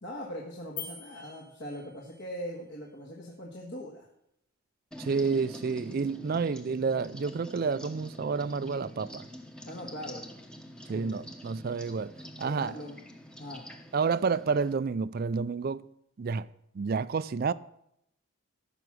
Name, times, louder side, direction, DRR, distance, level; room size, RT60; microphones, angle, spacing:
voice 1, 0.0-4.1 9.7-10.2 10.9-11.3 12.4-13.0 13.4-13.7, equal, 55° left, 1.6 m, -41 dB
sound 1, 0.8-2.3, left 7 dB, 35° left, 1.4 m, -44 dB
sound 2, 4.9-14.7, equal, 5° left, 0.9 m, -46 dB
voice 2, 5.0-9.3 10.9-12.7 13.9-15.9 16.2-16.5 16.7-17.5, right 5 dB, 45° right, 0.4 m, -30 dB
14.5 x 6.0 x 6.2 m
head